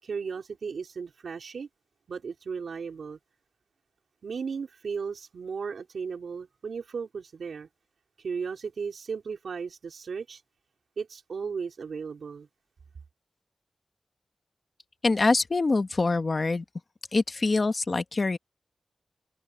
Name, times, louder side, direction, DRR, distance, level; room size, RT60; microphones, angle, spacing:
voice 1, 0.0-1.7 2.1-3.2 4.2-7.7 8.2-10.4 11.0-12.5, right 5 dB, 75° right, 3.8 m, -35 dB
voice 2, 15.0-16.6 17.1-18.4, left 3 dB, 35° left, 1.1 m, -24 dB
wide cardioid pair, 175°, 0 cm